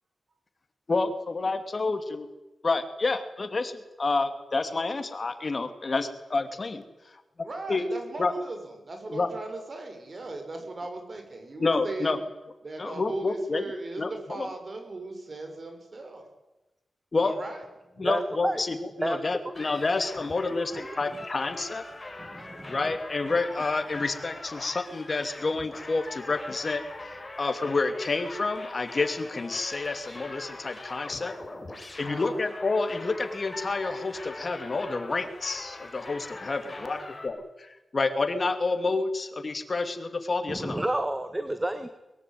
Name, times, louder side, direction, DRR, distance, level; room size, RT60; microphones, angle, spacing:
voice 1, 0.9-2.3 2.6-6.8 7.7-7.9 8.2-8.3 9.1-9.3 11.6-12.2 12.8-13.6 14.0-14.1 14.4-14.5 17.1-17.3 18.0-21.8 22.7-26.8 27.4-31.3 32.0-40.8, left 3 dB, 45° left, 9 dB, 2.6 m, -29 dB
voice 2, 7.4-12.2 12.6-16.3 17.1-17.6 20.2-20.8 32.0-32.4 36.7-37.1, right 2 dB, 45° right, 6 dB, 6.7 m, -39 dB
voice 3, 18.0-18.6 19.0-19.2 22.2-22.8 40.5-41.9, right 1 dB, 15° right, 10 dB, 1.8 m, -30 dB
sound 1, 19.5-37.3, left 2 dB, 25° left, 6.9 m, -42 dB
22.5 x 22.0 x 9.5 m, 1.0 s
wide cardioid pair, 80°, 0 cm